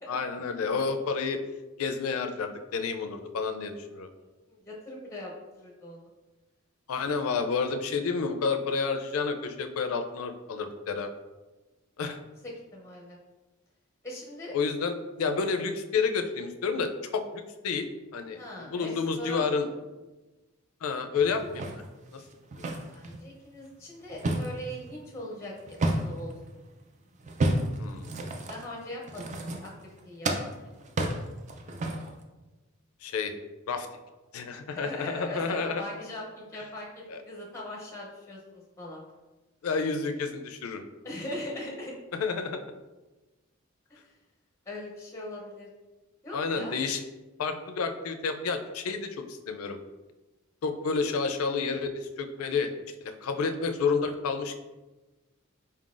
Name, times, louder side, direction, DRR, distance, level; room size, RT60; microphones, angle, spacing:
voice 1, 0.1-1.4 1.8-4.1 6.9-11.1 12.0-12.2 14.5-17.9 18.1-19.7 20.8-21.8 22.1-22.2 27.8-28.1 33.0-33.3 33.7-33.9 34.3-35.8 37.1-37.2 39.6-40.8 42.1-42.6 46.3-47.0 47.4-49.8 50.6-52.7 53.0-54.6, left 5 dB, 80° left, 7 dB, 0.4 m, -30 dB
voice 2, 4.5-6.1 12.4-13.2 14.0-14.5 18.3-19.7 22.9-26.6 28.5-30.9 34.7-39.0 41.0-41.9 44.0-44.1 44.7-45.7 46.2-46.7, left 1 dB, 15° left, -2 dB, 0.6 m, -40 dB
sound 1, 21.2-23.2 23.7-26.4 27.2-30.0 30.2-32.2, right 1 dB, 35° right, 0.4 m, -31 dB
4.2 x 3.8 x 2.4 m, 1.2 s
head